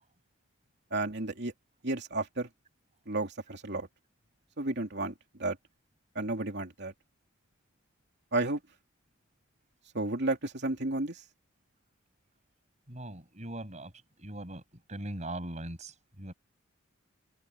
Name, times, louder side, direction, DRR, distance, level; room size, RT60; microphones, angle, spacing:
voice 1, 0.9-1.5 1.8-2.5 3.1-3.9 4.6-5.6 6.1-6.9 8.3-8.6 9.9-11.2, right 2 dB, 55° right, 3.0 m, -32 dB
voice 2, 12.9-13.9 14.2-14.6 14.9-16.3, right 1 dB, 35° right, 7.3 m, -40 dB
open air
head